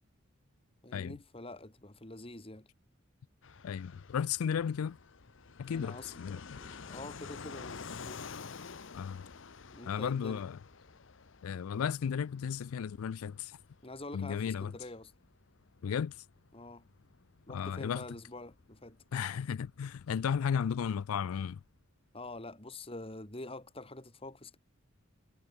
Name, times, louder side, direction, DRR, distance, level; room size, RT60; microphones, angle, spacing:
voice 1, 0.8-2.7 5.6-8.2 9.7-10.4 13.8-15.1 16.5-16.9 17.5-19.0 22.1-24.6, left 2 dB, 25° left, 2.7 m, -46 dB
Fixed-wing aircraft airplane, 3.4-21.8, left 5 dB, 60° left, 0.8 m, -51 dB
voice 2, 3.6-5.0 5.6-6.6 8.9-9.2 9.8-10.6 11.4-13.6 14.1-14.7 15.8-16.2 17.5-18.0 19.1-21.6, left 7 dB, 90° left, 0.4 m, -34 dB
head